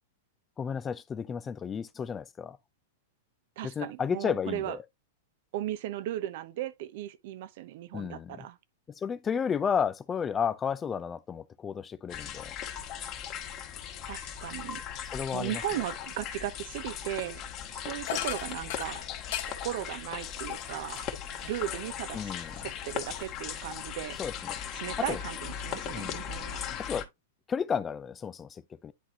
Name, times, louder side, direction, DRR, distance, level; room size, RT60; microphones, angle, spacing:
voice 1, 0.6-2.6 3.6-4.8 7.9-8.5 9.0-12.6 15.1-15.6 22.1-22.7 24.2-24.3 25.0-25.2 25.9-26.2 26.9-27.1 27.5-28.9, left 7 dB, 20° left, 0.5 m, -32 dB
voice 2, 3.6-4.8 5.5-8.6 14.1-14.8 15.3-17.4 17.7-19.0 19.5-21.1 21.4-22.3 22.6-24.2 24.7-26.6, right 13 dB, 60° right, 0.8 m, -36 dB
sound 1, 12.1-27.0, left 9 dB, 40° left, 1.7 m, -38 dB
sound 2, 18.0-22.0 22.4-23.6, left 12 dB, 60° left, 1.5 m, -40 dB
10.0 x 4.2 x 2.8 m
hypercardioid pair, 120°, 0 cm